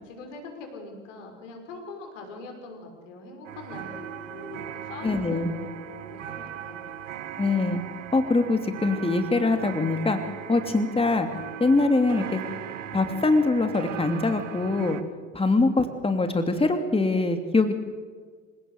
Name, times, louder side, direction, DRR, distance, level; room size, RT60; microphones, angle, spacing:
voice 1, 0.1-6.9, left 3 dB, 75° left, 3 dB, 6.1 m, -42 dB
sound 1, 3.4-15.0, right 8 dB, 80° right, 1.8 m, -38 dB
voice 2, 5.0-5.5 7.4-7.8 8.1-10.2 10.5-11.3 11.6-12.4 12.9-15.0 15.3-17.7, left 3 dB, 15° left, 6 dB, 2.9 m, -23 dB
27.5 x 18.0 x 8.2 m, 1.5 s
hypercardioid pair, 65°, 37 cm